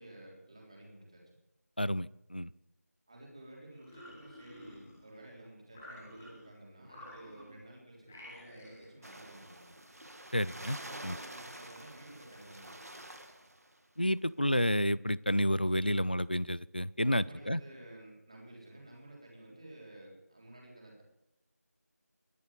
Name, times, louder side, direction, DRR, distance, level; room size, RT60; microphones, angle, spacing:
voice 1, 0.0-1.4 3.1-9.7 10.8-13.0 17.0-21.0, right 1 dB, 20° right, -2 dB, 3.5 m, -52 dB
voice 2, 1.8-2.5 10.3-10.8 11.0-11.2 14.0-17.6, equal, 35° left, 22 dB, 0.3 m, -30 dB
sound 1, 3.7-5.2 5.7-6.5 6.8-7.7 8.0-9.0, left 1 dB, 5° left, 1.6 m, -52 dB
sound 2, 9.0-13.8, right 1 dB, 65° right, 2.5 m, -48 dB
21.0 x 7.4 x 5.0 m, 0.88 s
figure-of-eight pair, 175°, 9 cm